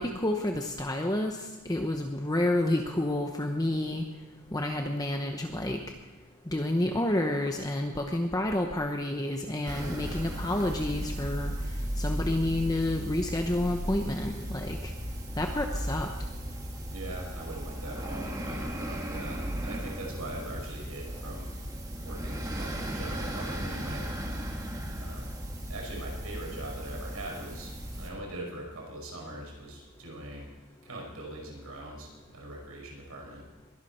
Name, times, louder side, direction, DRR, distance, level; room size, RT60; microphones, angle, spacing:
voice 1, 0.0-4.0 4.5-5.8 6.5-11.5 12.0-14.9 15.4-16.1, left 1 dB, 15° left, 3 dB, 0.9 m, -29 dB
sound 1, 9.6-28.1, equal, 15° right, 1.8 m, -36 dB
voice 2, 16.9-21.5 22.0-24.0 24.9-25.3 25.7-27.7 28.0-30.5 30.8-33.4, right 1 dB, 80° right, -1 dB, 5.6 m, -42 dB
21.5 x 12.0 x 4.4 m, 1.2 s
head